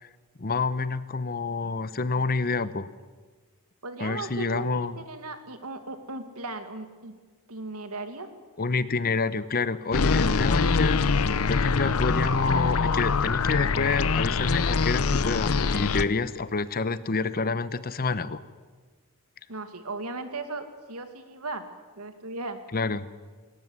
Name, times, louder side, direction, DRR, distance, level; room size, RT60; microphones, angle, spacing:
voice 1, 0.4-2.9 4.0-5.0 8.6-18.4 22.7-23.1, left 4 dB, 40° left, 16 dB, 0.9 m, -28 dB
voice 2, 3.8-7.1 7.5-8.3 19.5-21.6 22.0-22.6, right 3 dB, 80° right, 8 dB, 2.3 m, -37 dB
sound 1, 9.9-16.0, left 4 dB, 70° left, 0.8 m, -24 dB
20.0 x 18.0 x 9.7 m, 1.4 s
head